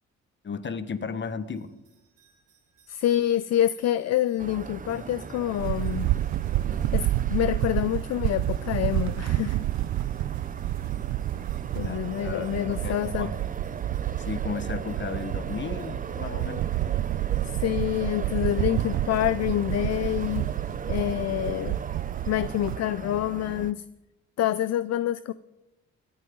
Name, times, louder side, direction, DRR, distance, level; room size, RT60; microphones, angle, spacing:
voice 1, 0.4-1.7 11.8-13.3 14.2-16.7, left 5 dB, 40° left, 11 dB, 1.4 m, -35 dB
sound 1, 1.4-20.4, right 6 dB, 85° right, 4.1 m, -64 dB
voice 2, 2.9-6.1 6.9-9.6 11.7-13.4 17.4-20.5 20.9-21.8 22.3-23.8 24.4-25.3, left 12 dB, 60° left, 16 dB, 0.5 m, -27 dB
sound 2, 4.4-23.7, right 6 dB, 25° right, 0.6 m, -38 dB
sound 3, 5.6-22.8, right 15 dB, 70° right, 0.4 m, -29 dB
24.5 x 9.5 x 3.9 m, 0.99 s
cardioid pair, 90°, 30 cm